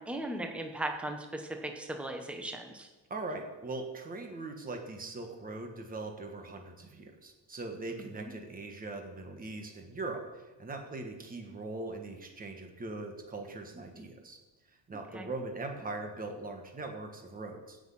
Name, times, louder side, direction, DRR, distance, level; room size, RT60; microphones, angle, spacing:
voice 1, 0.0-2.9 8.1-8.3 15.1-15.3, right 1 dB, 5° right, 4 dB, 0.9 m, -37 dB
voice 2, 3.1-14.4 14.7-17.8, right 2 dB, 20° right, 4 dB, 1.5 m, -41 dB
16.0 x 6.5 x 5.6 m, 1.2 s
cardioid pair, 175°, 42 cm